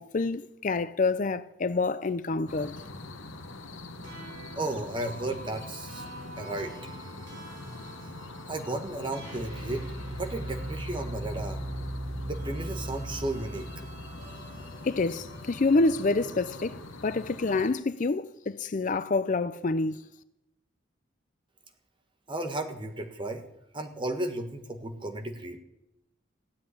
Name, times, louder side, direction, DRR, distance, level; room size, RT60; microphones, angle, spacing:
voice 1, 0.0-2.8 14.8-20.1, left 3 dB, 40° left, 0.5 m, -27 dB
sound 1, 2.5-17.7, left 2 dB, 85° left, 1.2 m, -43 dB
sound 2, 4.0-16.5, right 1 dB, 85° right, 6.2 m, -40 dB
voice 2, 4.5-6.0 6.4-6.7 8.5-11.6 12.2-13.7 22.3-23.4 23.7-25.6, right 2 dB, 25° right, 1.6 m, -34 dB
16.0 x 7.7 x 10.0 m
head